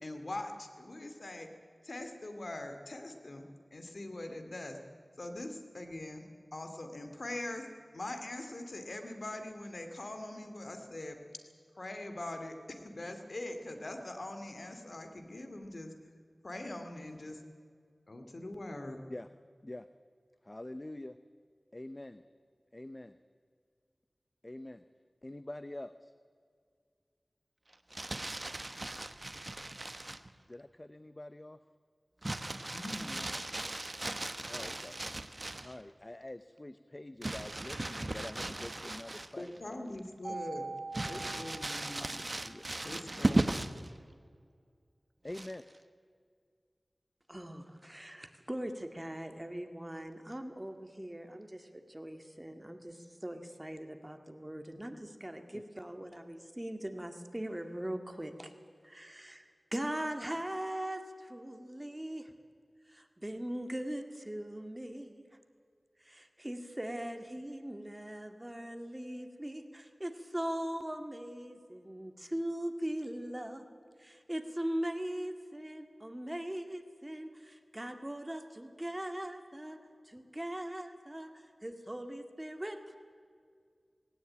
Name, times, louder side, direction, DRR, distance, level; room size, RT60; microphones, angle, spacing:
voice 1, 0.0-1.5 1.8-4.8 5.2-6.2 6.5-7.7 7.9-11.2 11.7-15.9 16.4-17.4 18.1-19.0 32.7-33.3 39.4-40.7 41.0-42.2 42.8-43.5, left 1 dB, 65° left, 6 dB, 2.4 m, -42 dB
voice 2, 20.4-21.2 21.7-22.2 22.7-23.2 24.4-24.8 25.2-26.1 30.5-31.6 34.5-35.0 35.6-39.8 42.0-42.1 42.4-42.6 45.2-45.6 55.5-55.6, left 1 dB, 35° left, 12 dB, 0.7 m, -45 dB
Crumpling crinkling, 27.7-30.3 32.2-35.8 37.2-39.6 40.0-40.1 40.9-43.9 45.3-45.8, right 2 dB, 40° right, 1.0 m, -37 dB
Mallet percussion, 40.2-42.5, right 3 dB, 75° right, 3.0 m, -43 dB
voice 3, 47.3-58.5 58.8-62.3 62.9-65.2 66.0-73.7 74.0-79.8 80.1-83.0, right 1 dB, 20° right, 7 dB, 2.0 m, -40 dB
19.0 x 17.5 x 8.9 m, 2.1 s
wide cardioid pair, 45°, 0 cm